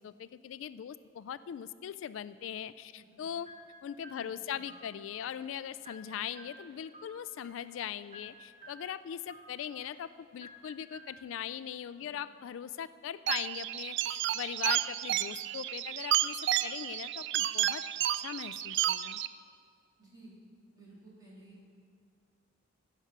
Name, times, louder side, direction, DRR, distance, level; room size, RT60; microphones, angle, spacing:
voice 1, 0.0-3.5 3.8-17.8 18.2-19.2, left 9 dB, 80° left, 15 dB, 0.3 m, -40 dB
sound 1, 3.4-11.2, equal, 40° right, 1.3 m, -54 dB
voice 2, 4.2-4.6 12.0-12.1 20.0-20.3 20.7-21.7, right 2 dB, 20° right, -7 dB, 3.5 m, -55 dB
sound 2, 13.3-19.3, right 12 dB, 65° right, 0.3 m, -31 dB
16.0 x 5.7 x 6.0 m, 2.2 s
head